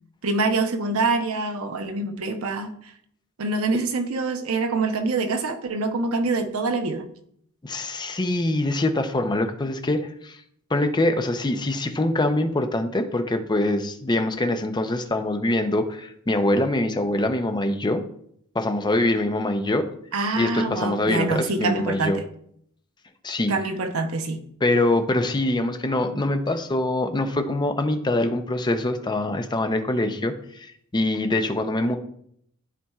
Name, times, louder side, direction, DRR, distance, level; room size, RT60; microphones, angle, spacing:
voice 1, 0.2-2.9 3.4-7.1 20.1-22.2 23.5-24.4, right 3 dB, 80° right, 6 dB, 0.8 m, -25 dB
voice 2, 7.6-10.4 10.7-18.0 18.5-19.9 20.4-22.2 23.2-23.5 24.6-32.0, left 1 dB, 20° left, 7 dB, 0.5 m, -24 dB
12.5 x 4.3 x 2.4 m, 0.69 s
head